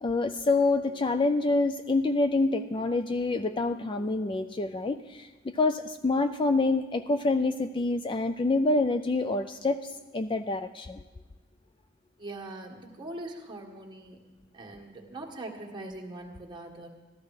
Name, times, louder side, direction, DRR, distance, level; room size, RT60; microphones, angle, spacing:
voice 1, 0.0-11.0, left 3 dB, 25° left, 9 dB, 0.3 m, -27 dB
voice 2, 12.2-14.2 14.5-16.9, right 2 dB, 25° right, -1 dB, 1.7 m, -41 dB
14.0 x 13.5 x 4.8 m, 1.3 s
head